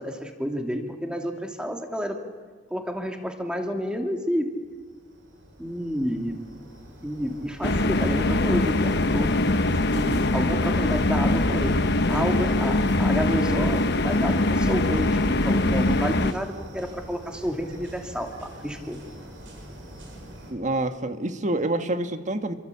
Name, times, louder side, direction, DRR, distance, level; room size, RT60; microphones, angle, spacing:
voice 1, 0.0-2.2 2.7-4.6 5.6-6.3 7.0-9.3 9.9-11.7 12.1-19.0, equal, 5° right, 3 dB, 2.9 m, -30 dB
sound 1, 4.6-20.5, equal, 80° right, 7.1 m, -43 dB
sound 2, 7.6-16.3, left 2 dB, 60° left, 1.1 m, -22 dB
voice 2, 20.5-22.5, right 2 dB, 40° right, 8 dB, 1.7 m, -27 dB
28.0 x 23.5 x 8.6 m, 1.5 s
head